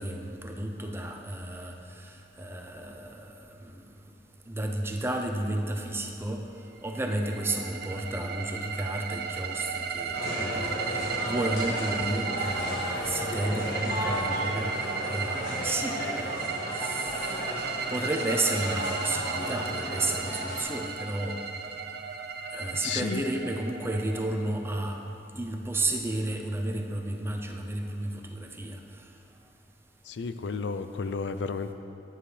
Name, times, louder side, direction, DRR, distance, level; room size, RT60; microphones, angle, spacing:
voice 1, 0.0-3.3 3.6-3.7 4.5-6.5 6.8-17.3 17.9-21.4 22.5-25.0 25.4-28.8, right 1 dB, 15° right, 2 dB, 0.6 m, -32 dB
sound 1, 6.9-24.7, right 5 dB, 65° right, 0.6 m, -35 dB
sound 2, 10.1-20.6, left 1 dB, 60° left, 1.7 m, -34 dB
voice 2, 22.8-23.3 30.1-31.7, left 5 dB, 80° left, 10 dB, 0.4 m, -32 dB
11.0 x 9.5 x 3.3 m, 2.7 s
head